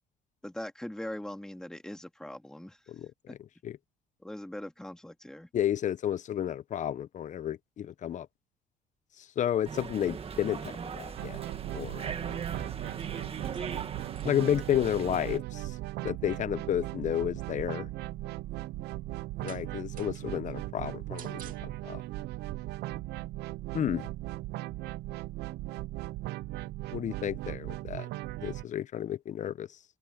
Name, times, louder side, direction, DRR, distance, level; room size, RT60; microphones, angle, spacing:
voice 1, 0.4-2.8 3.3-3.4 4.2-5.5 16.5-16.9, left 1 dB, 5° left, 2.3 m, -41 dB
voice 2, 2.9-3.4 3.6-3.8 5.5-8.3 9.2-11.4 11.7-12.1 14.2-15.8 16.0-17.9 19.4-22.0 23.7-24.1 26.9-28.1 28.4-29.7, left 10 dB, 45° left, 0.8 m, -31 dB
sound 1, 9.6-15.4, right 6 dB, 35° right, 1.9 m, -39 dB
sound 2, 11.2-28.6, right 17 dB, 75° right, 0.6 m, -38 dB
sound 3, 11.6-22.1, right 9 dB, 55° right, 2.7 m, -55 dB
cardioid pair, 110°, 17 cm